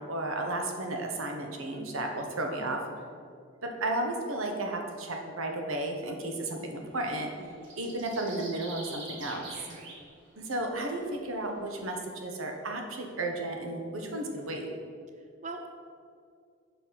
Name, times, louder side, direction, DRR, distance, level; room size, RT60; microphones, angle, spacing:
voice 1, 0.0-2.8 3.6-7.3 7.8-9.5 10.4-14.7, right 2 dB, 90° right, 2 dB, 1.2 m, -33 dB
sound 1, 6.9-7.1 7.4-10.1 10.5-10.6, right 2 dB, 60° right, 1.8 m, -45 dB
voice 2, 7.4-7.7 9.7-9.9 15.4-15.7, right 3 dB, 35° right, 4 dB, 0.5 m, -42 dB
7.3 x 5.4 x 5.8 m, 2.2 s
head